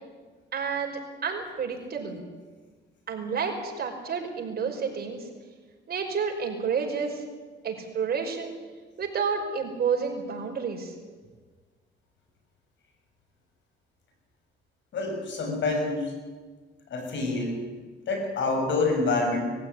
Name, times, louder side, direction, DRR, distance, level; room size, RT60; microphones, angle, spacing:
voice 1, 0.5-2.2 3.1-5.3 5.9-7.2 7.6-8.5 9.0-10.9, right 6 dB, 50° right, 1 dB, 5.4 m, -30 dB
voice 2, 14.9-16.1 16.9-17.6 18.1-19.5, left 3 dB, 70° left, 3 dB, 7.0 m, -27 dB
21.0 x 15.0 x 9.8 m, 1.4 s
cardioid pair, 90°, 20 cm